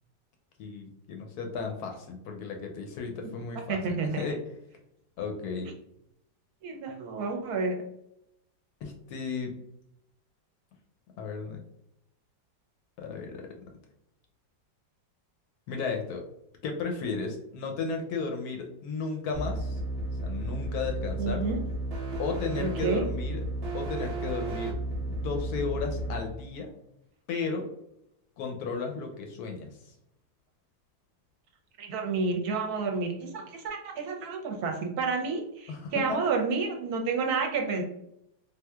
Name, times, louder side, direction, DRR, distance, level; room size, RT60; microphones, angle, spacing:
voice 1, 0.6-3.8 4.2-4.4 5.2-5.7 8.8-9.5 11.2-11.6 13.0-13.4 15.7-16.2 16.6-19.8 20.2-21.4 22.2-23.4 23.7-24.7 25.0-26.7 27.3-27.7 28.4-29.9 35.7-36.2, left 4 dB, 70° left, 3 dB, 1.0 m, -34 dB
voice 2, 3.7-4.2 6.6-7.8 21.2-21.6 22.6-23.0 31.8-37.8, right 4 dB, 70° right, 2 dB, 1.0 m, -30 dB
sound 1, 19.3-26.2, right 2 dB, 50° right, 0.7 m, -33 dB
3.5 x 2.7 x 2.2 m, 0.79 s
omnidirectional pair, 1.9 m